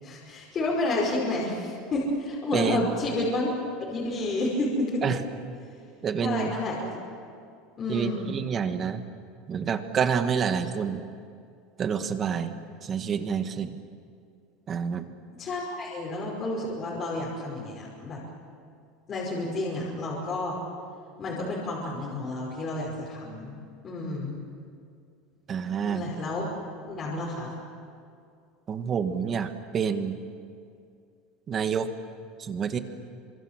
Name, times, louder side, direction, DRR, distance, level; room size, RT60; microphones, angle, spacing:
voice 1, 0.0-3.5 3.9-5.2 6.2-6.9 7.8-8.2 15.4-18.2 19.1-20.6 21.2-23.6 23.8-24.4 25.8-26.4 26.9-27.6, left 2 dB, 25° left, -5 dB, 5.4 m, -30 dB
voice 2, 2.5-2.8 5.0-5.2 6.0-6.5 7.9-9.0 9.5-11.0 11.8-12.5 12.8-13.8 14.7-15.1 25.5-26.1 28.7-30.2 31.5-31.9 32.4-32.8, right 7 dB, 25° right, 8 dB, 1.6 m, -28 dB
28.5 x 25.5 x 7.6 m, 2.4 s
supercardioid pair, 160°, 0 cm